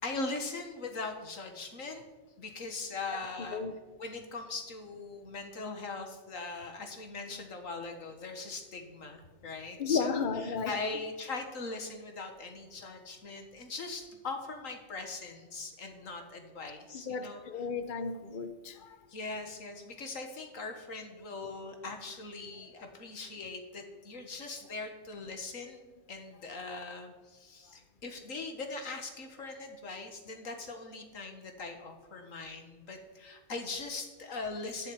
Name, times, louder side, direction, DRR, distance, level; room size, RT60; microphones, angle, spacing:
voice 1, 0.0-2.1 2.4-3.6 4.0-10.2 10.5-17.4 19.1-34.9, left 3 dB, 90° left, 5 dB, 2.1 m, -40 dB
voice 2, 9.8-10.7 16.9-19.0, left 5 dB, 45° left, 9 dB, 1.0 m, -33 dB
11.5 x 7.5 x 9.3 m, 1.2 s
omnidirectional pair, 1.3 m